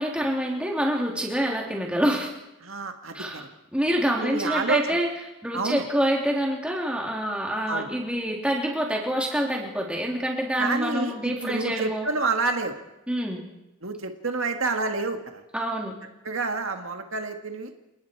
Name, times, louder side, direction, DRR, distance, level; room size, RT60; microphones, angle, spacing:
voice 1, 0.0-2.3 3.1-3.4 3.7-5.1 5.4-12.1 13.1-13.4 15.5-15.9, equal, 5° right, -1 dB, 3.4 m, -26 dB
voice 2, 2.6-3.4 4.2-5.0 5.5-5.8 7.7-7.9 10.6-12.8 13.8-15.4 16.2-17.7, right 3 dB, 70° right, 5 dB, 1.8 m, -28 dB
29.0 x 19.0 x 4.7 m, 0.95 s
head